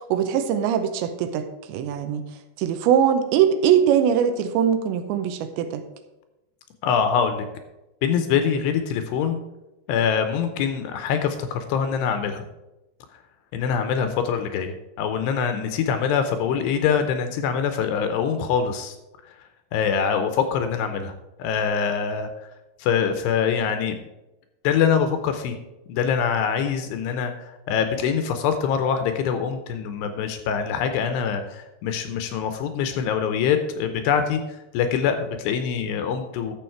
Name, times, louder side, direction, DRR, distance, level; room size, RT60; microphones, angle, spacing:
voice 1, 0.1-2.2 2.6-5.8, right 8 dB, 80° right, 9 dB, 2.9 m, -21 dB
voice 2, 6.8-7.5 8.0-9.4 9.9-12.5 13.5-18.9 19.7-21.1 21.4-22.3 22.8-24.0 24.6-25.6 25.9-34.4 34.7-36.5, left 7 dB, 80° left, 8 dB, 2.6 m, -24 dB
12.0 x 7.0 x 4.5 m, 0.99 s
omnidirectional pair, 5.3 m